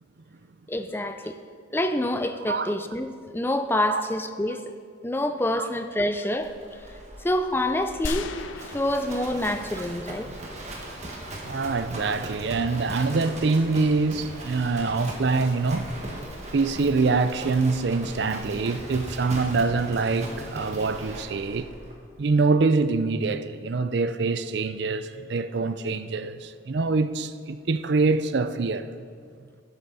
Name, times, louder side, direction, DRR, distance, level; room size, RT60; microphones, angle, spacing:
voice 1, 0.7-1.4 1.7-4.6 5.0-6.5 7.2-8.3 8.7-10.3, left 1 dB, 10° left, 0.4 m, -27 dB
Livestock farm animals working animals, 6.4-21.9, right 1 dB, 35° right, 1.7 m, -39 dB
sound 1, 8.0-10.0 10.3-10.4, left 3 dB, 90° left, 0.6 m, -36 dB
voice 2, 11.5-15.9 16.5-21.7 22.2-28.9, right 3 dB, 65° right, 0.5 m, -25 dB
12.0 x 11.5 x 4.1 m
head